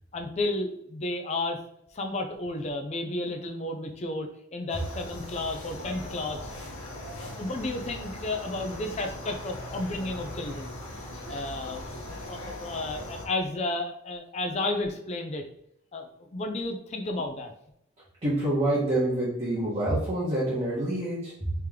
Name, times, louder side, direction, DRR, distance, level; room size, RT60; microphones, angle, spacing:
voice 1, 0.1-1.6 1.9-6.5 7.2-10.7 11.3-15.4 15.9-17.5, left 2 dB, 30° left, 5 dB, 0.4 m, -32 dB
sound 1, 4.7-13.3, left 1 dB, 80° left, 1.0 m, -40 dB
voice 2, 18.2-21.5, right 1 dB, 30° right, -8 dB, 1.0 m, -27 dB
3.3 x 2.9 x 3.6 m, 0.76 s
head